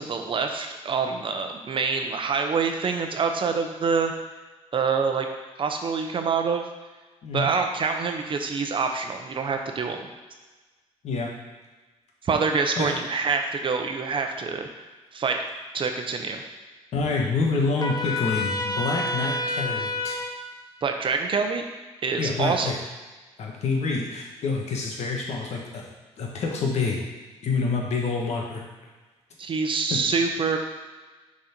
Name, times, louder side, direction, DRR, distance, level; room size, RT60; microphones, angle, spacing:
voice 1, 0.0-4.1 4.7-5.3 5.6-6.6 7.3-10.1 12.2-14.7 15.1-15.4 15.7-16.4 20.8-21.6 22.0-22.7 29.4-30.6, right 5 dB, 45° right, 5 dB, 0.8 m, -26 dB
voice 2, 7.2-7.5 11.0-11.3 12.8-12.9 16.9-20.2 22.2-22.8 23.4-25.8 26.2-27.0 27.4-28.6, left 4 dB, 70° left, -1 dB, 1.5 m, -27 dB
Trumpet, 17.8-20.3, left 2 dB, 35° left, 0.9 m, -28 dB
6.3 x 4.2 x 4.5 m, 1.3 s
cardioid pair, 90°, 12 cm